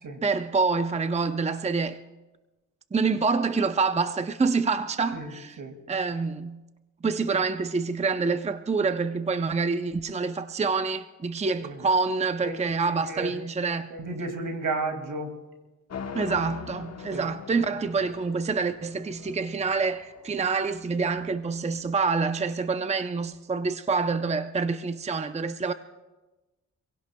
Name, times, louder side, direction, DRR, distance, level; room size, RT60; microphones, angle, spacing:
voice 1, 0.2-2.0 2.9-5.6 5.9-6.6 7.0-13.9 16.1-25.7, right 4 dB, 20° right, 0.6 m, -27 dB
voice 2, 5.1-5.7 11.6-11.8 12.4-13.3 13.9-15.3 17.1-17.2, right 2 dB, 70° right, 2.4 m, -33 dB
sound 1, 15.9-22.0, left 6 dB, 50° left, 1.0 m, -42 dB
26.0 x 17.0 x 2.3 m
cardioid pair, 70°, 32 cm